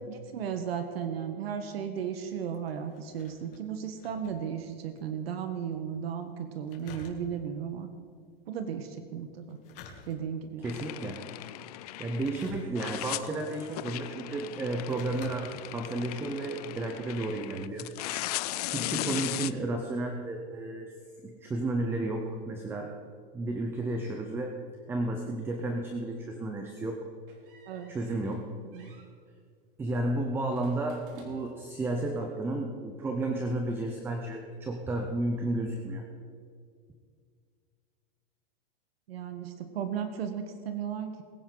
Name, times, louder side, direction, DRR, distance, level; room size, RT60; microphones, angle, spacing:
voice 1, 0.1-7.9 8.5-9.6 10.1-10.7 27.7-27.9 28.7-28.9 39.1-41.2, right 8 dB, 80° right, 7 dB, 1.4 m, -35 dB
sound 1, 2.3-5.1 5.4-5.5 6.7-7.6 9.4-10.5 11.1-11.4 12.2-13.1 13.9-14.0 14.6-15.3 15.8-15.9, left 5 dB, 65° left, 2.7 m, -50 dB
sound 2, 10.6-12.5 12.8-19.5, left 16 dB, 40° left, 0.4 m, -37 dB
voice 2, 10.6-11.2 12.0-17.9 18.7-20.9 21.2-22.9 23.3-24.6 24.9-27.1 27.9-28.5 29.8-36.1, right 2 dB, 5° right, 3 dB, 0.6 m, -32 dB
sound 3, 27.3-28.4 28.7-29.1 30.5-31.7, right 4 dB, 60° right, 3.3 m, -54 dB
21.5 x 9.8 x 3.9 m, 2.1 s
supercardioid pair, 165°, 30 cm